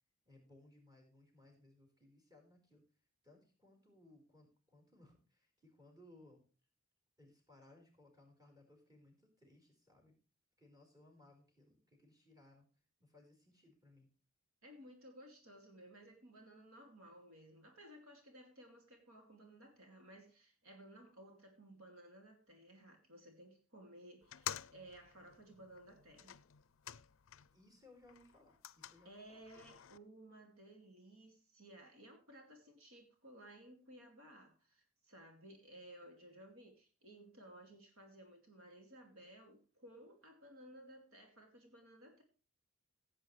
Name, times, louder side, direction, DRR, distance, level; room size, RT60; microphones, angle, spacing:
voice 1, 0.2-2.8 3.2-6.4 7.2-10.1 10.6-12.7 13.0-14.1 27.5-29.4, left 2 dB, 20° right, 2 dB, 4.7 m, -64 dB
voice 2, 14.6-26.4 29.0-42.2, right 1 dB, 75° right, 3 dB, 2.5 m, -58 dB
sound 1, 24.2-27.7 28.0-30.0, left 11 dB, 65° left, 0.5 m, -50 dB
16.5 x 8.7 x 3.3 m, 0.35 s
head